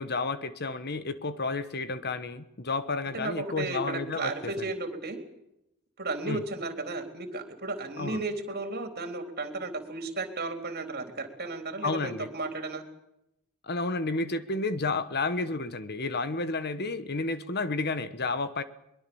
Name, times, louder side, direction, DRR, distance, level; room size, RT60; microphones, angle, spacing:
voice 1, 0.0-4.3 4.6-4.7 6.2-6.4 8.0-8.2 11.8-12.3 13.6-18.6, left 3 dB, 45° left, 13 dB, 1.3 m, -31 dB
voice 2, 3.1-5.2 6.0-12.8, right 2 dB, 45° right, 7 dB, 3.8 m, -34 dB
23.0 x 21.5 x 7.1 m, 0.84 s
head